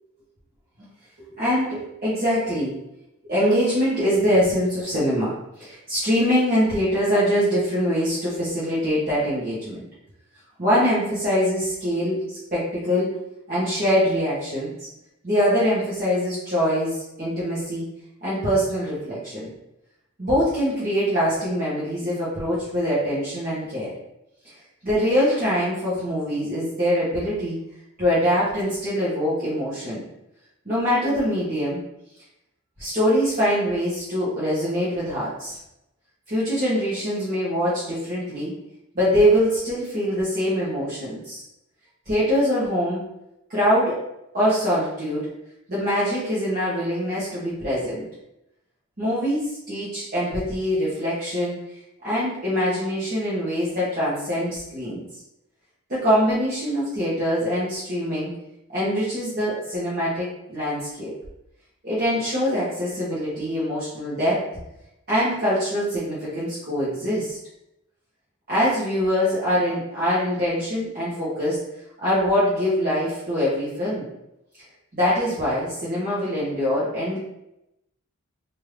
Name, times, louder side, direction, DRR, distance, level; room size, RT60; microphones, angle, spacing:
voice 1, 1.3-2.8 3.2-9.8 10.6-13.1 13.5-14.7 15.2-17.9 18.2-19.5 20.2-24.0 24.4-24.5 24.8-27.6 28.0-30.0 30.6-31.8 32.8-35.6 36.3-38.5 38.9-41.4 42.1-43.0 43.5-44.0 44.3-45.3 45.7-48.0 49.0-51.6 52.0-55.0 55.9-58.3 58.7-61.1 61.8-64.4 65.1-67.4 68.5-71.6 72.0-74.0 74.9-77.2, equal, 45° right, -10 dB, 1.1 m, -23 dB
3.6 x 2.6 x 3.2 m, 0.86 s
head